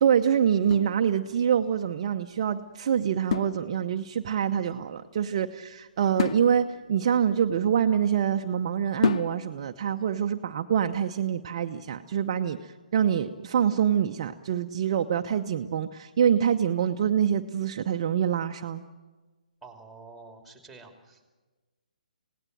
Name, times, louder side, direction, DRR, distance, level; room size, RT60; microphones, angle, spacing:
voice 1, 0.0-18.8, right 8 dB, 40° right, 6 dB, 0.8 m, -25 dB
sound 1, 0.6-1.7 3.3-4.2 6.2-8.2 9.0-9.8, left 7 dB, 40° left, 0.8 m, -32 dB
voice 2, 19.6-21.3, right 3 dB, ahead, 4 dB, 2.7 m, -48 dB
27.0 x 18.0 x 7.7 m, 1.3 s
figure-of-eight pair, 135°, 4 cm